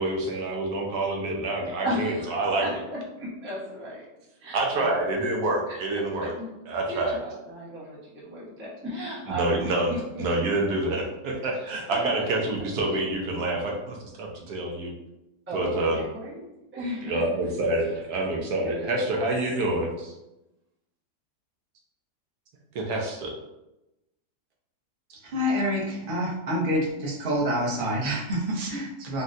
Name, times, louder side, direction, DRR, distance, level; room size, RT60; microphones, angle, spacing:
voice 1, 0.0-2.7 4.5-6.3 6.7-7.2 9.3-14.9 15.5-16.0 17.0-20.1 22.7-23.3, right 2 dB, 75° right, 0 dB, 1.1 m, -27 dB
voice 2, 1.8-4.1 4.4-5.2 5.7-5.8 6.2-6.5 6.9-10.2 11.6-12.7 14.4-14.5 15.5-16.5 16.7-17.2 18.6-19.2, equal, 15° right, -8 dB, 0.5 m, -35 dB
voice 3, 25.2-29.2, equal, 45° right, -4 dB, 0.7 m, -27 dB
3.8 x 2.2 x 2.5 m, 0.93 s
omnidirectional pair, 1.8 m